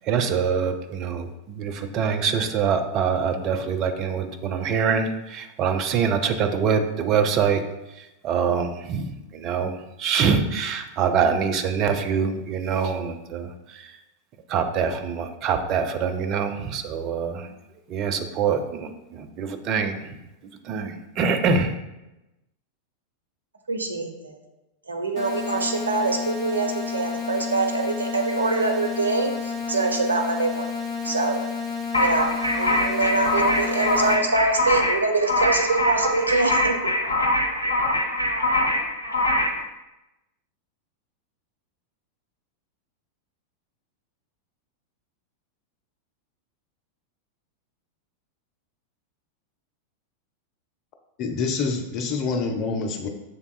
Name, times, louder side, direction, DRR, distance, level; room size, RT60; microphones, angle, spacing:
voice 1, 0.1-7.6 8.2-13.9 14.5-17.5 17.9-20.1 20.7-21.7, right 6 dB, 35° right, 6 dB, 0.4 m, -24 dB
voice 2, 23.7-24.4 24.9-30.7 31.0-31.4 32.0-36.7, right 3 dB, 75° right, 2 dB, 0.6 m, -24 dB
sound 1, 25.2-34.2, left 5 dB, 10° left, 0.8 m, -31 dB
sound 2, 31.9-39.6, left 1 dB, 85° left, 0.5 m, -23 dB
voice 3, 51.2-53.1, left 4 dB, 40° left, 4 dB, 0.6 m, -26 dB
6.6 x 3.5 x 2.2 m, 0.96 s
figure-of-eight pair, 90°, 0 cm